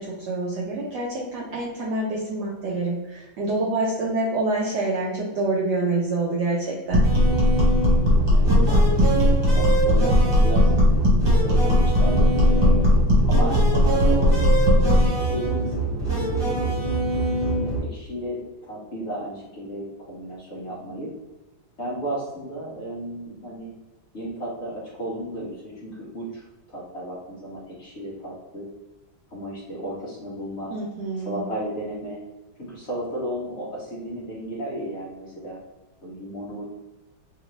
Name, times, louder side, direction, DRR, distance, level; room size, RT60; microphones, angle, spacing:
voice 1, 0.0-7.0 30.7-31.4, right 2 dB, 75° right, -4 dB, 1.0 m, -26 dB
sound 1, 6.9-15.1, left 1 dB, 60° right, 1.6 m, -18 dB
sound 2, 7.0-17.8, right 3 dB, 20° right, 1.1 m, -25 dB
voice 2, 8.3-10.7 11.4-12.9 13.3-16.7 17.4-21.1 21.8-23.7 24.1-28.7 29.3-30.7 31.2-32.2 32.6-35.6 36.0-36.6, right 1 dB, 60° left, -7 dB, 0.7 m, -34 dB
3.5 x 2.5 x 3.0 m, 1.1 s
omnidirectional pair, 2.3 m